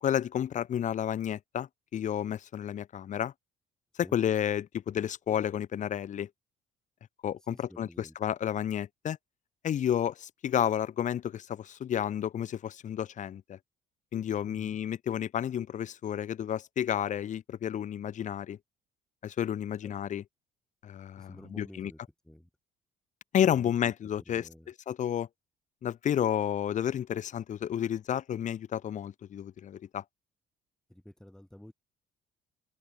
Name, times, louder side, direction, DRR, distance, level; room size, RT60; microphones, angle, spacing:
voice 1, 0.0-3.3 4.0-6.3 7.2-9.2 9.6-13.6 14.1-18.6 19.2-20.2 20.8-21.9 23.3-24.5 24.9-25.3 25.8-30.0, left 10 dB, 45° left, 1.0 m, -31 dB
voice 2, 7.5-8.2 14.5-14.8 19.8-19.9 21.2-22.0 22.2-22.5 24.3-24.7 30.9-31.7, left 1 dB, 5° left, 5.3 m, -50 dB
cardioid pair, 110°, 17 cm